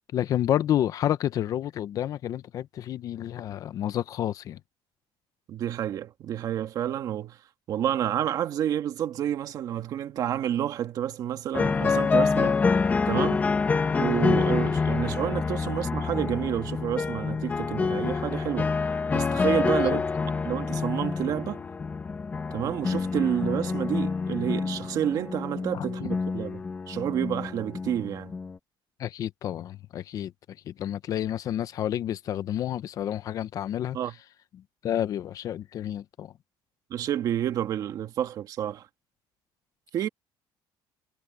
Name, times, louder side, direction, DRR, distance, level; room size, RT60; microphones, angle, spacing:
voice 1, 0.1-4.6 19.7-20.0 25.7-26.1 29.0-30.3 30.7-34.0 34.8-36.3, left 11 dB, 40° left, 0.6 m, -30 dB
voice 2, 5.5-7.4 7.7-12.6 13.1-13.4 14.0-18.7 19.1-20.0 20.4-21.6 22.5-28.3 33.9-34.1 36.9-38.9 39.9-40.1, right 10 dB, 45° right, 1.7 m, -29 dB
sound 1, 11.5-28.6, left 4 dB, 20° left, 1.5 m, -27 dB
cardioid pair, 175°, 9 cm